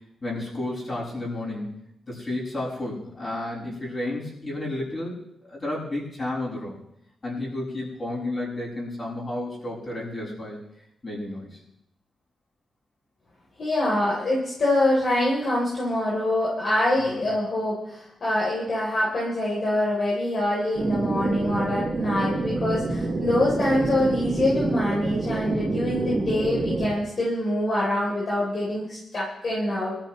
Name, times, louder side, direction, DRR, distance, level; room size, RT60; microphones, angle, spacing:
voice 1, 0.2-1.8 2.1-6.8 7.2-10.7 11.0-11.6 17.0-17.2, left 1 dB, 35° left, -5 dB, 6.5 m, -32 dB
voice 2, 13.6-30.0, left 1 dB, 50° left, -5 dB, 3.5 m, -25 dB
sound 1, 20.7-26.9, right 3 dB, 35° right, 4.2 m, -27 dB
23.0 x 13.5 x 3.2 m, 0.81 s
cardioid pair, 105°, 0 cm